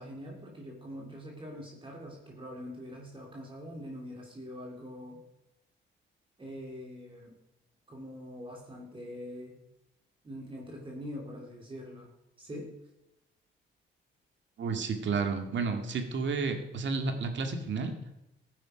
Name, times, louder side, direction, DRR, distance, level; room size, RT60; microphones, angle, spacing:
voice 1, 0.0-5.2 6.4-7.4 7.9-9.6 10.2-12.7, equal, 25° right, -2 dB, 3.3 m, -43 dB
voice 2, 14.6-17.9, right 4 dB, 65° right, 5 dB, 2.2 m, -31 dB
15.5 x 9.1 x 5.1 m, 0.89 s
cardioid pair, 100°, 20 cm